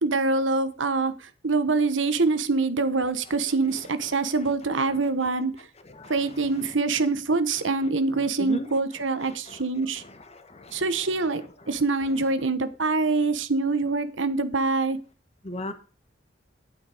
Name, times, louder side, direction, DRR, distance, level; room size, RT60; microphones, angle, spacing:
voice 1, 0.0-5.7 6.1-10.0 10.7-11.4 11.7-15.0, right 3 dB, 85° right, 1.2 m, -25 dB
voice 2, 5.9-6.2 8.4-8.7 9.3-9.6 10.0-10.8 15.4-15.7, left 1 dB, 35° left, 1.4 m, -36 dB
9.3 x 8.7 x 5.0 m
head